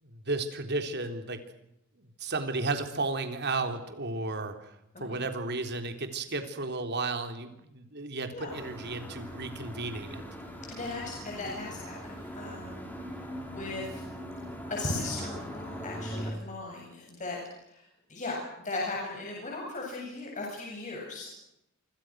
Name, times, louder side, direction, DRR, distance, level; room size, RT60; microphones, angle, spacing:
voice 1, 0.0-1.4 2.0-10.2, right 3 dB, 55° right, 7 dB, 3.7 m, -33 dB
sound 1, 8.5-16.3, equal, 10° left, 6.4 m, -41 dB
voice 2, 10.7-12.1 12.3-12.9 13.4-14.0 14.7-17.4 18.1-21.3, left 2 dB, 35° left, -2 dB, 8.0 m, -37 dB
28.0 x 26.5 x 6.4 m, 0.81 s
head